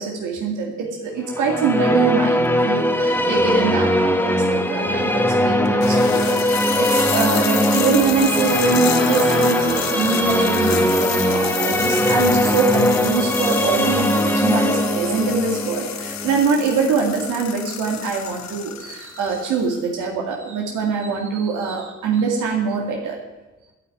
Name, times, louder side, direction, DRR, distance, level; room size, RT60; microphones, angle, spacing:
voice 1, 0.0-23.2, right 5 dB, 90° right, 0 dB, 2.3 m, -23 dB
sound 1, 1.3-17.3, left 1 dB, 5° left, 1.6 m, -20 dB
sound 2, 2.4-2.5 3.5-3.6 5.6-19.8, left 8 dB, 60° left, 1.4 m, -30 dB
10.5 x 9.2 x 9.3 m, 1.1 s
cardioid pair, 90°, 30 cm